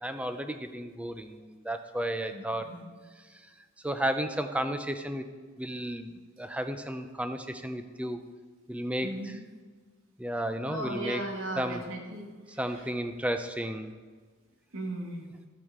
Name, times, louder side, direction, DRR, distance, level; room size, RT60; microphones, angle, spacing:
voice 1, 0.0-2.7 3.8-5.2 5.6-8.2 8.7-9.4 10.2-11.2 11.6-11.8 12.6-13.9, right 1 dB, 5° right, 8 dB, 0.5 m, -33 dB
voice 2, 2.3-2.9 9.0-9.4 10.7-12.3 12.7-12.8 14.7-15.3, right 1 dB, 90° right, 0 dB, 2.2 m, -37 dB
13.5 x 8.4 x 3.6 m, 1.4 s
head